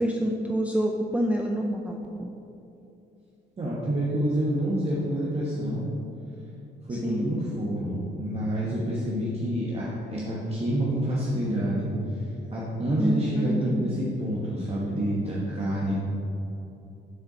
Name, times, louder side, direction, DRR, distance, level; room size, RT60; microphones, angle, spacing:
voice 1, 0.0-2.3 6.9-7.3 13.0-14.0, right 1 dB, 5° right, 1 dB, 0.4 m, -27 dB
voice 2, 3.6-5.8 6.9-11.9 12.5-15.9, right 1 dB, 30° right, -6 dB, 1.1 m, -28 dB
6.7 x 4.3 x 4.9 m, 2.8 s
cardioid pair, 90°, 20 cm